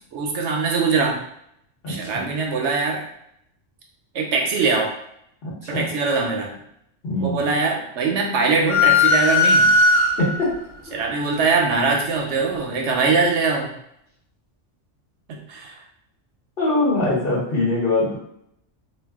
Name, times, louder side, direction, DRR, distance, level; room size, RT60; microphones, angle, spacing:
voice 1, 0.1-1.2 1.9-3.0 4.1-4.9 5.7-6.6 7.2-9.7 10.9-13.7 15.3-15.8, right 4 dB, 70° right, 1 dB, 0.8 m, -22 dB
voice 2, 1.8-2.2 5.4-5.9 7.0-7.4 10.2-10.5 16.6-18.2, left 2 dB, 50° left, -6 dB, 1.1 m, -22 dB
sound 1, 8.7-10.5, left 3 dB, 80° left, 1.1 m, -17 dB
2.5 x 2.3 x 3.4 m, 0.73 s
omnidirectional pair, 1.3 m